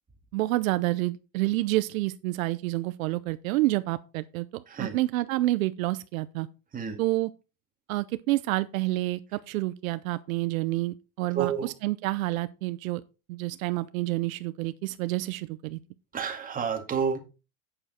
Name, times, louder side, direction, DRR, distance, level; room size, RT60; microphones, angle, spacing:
voice 1, 0.3-6.5 7.0-7.3 7.9-13.0 13.3-15.8, right 18 dB, 75° right, 0.7 m, -28 dB
voice 2, 11.3-11.7 16.1-17.2, right 7 dB, 20° right, 2.1 m, -29 dB
8.8 x 7.0 x 4.3 m
supercardioid pair, 130°, 42 cm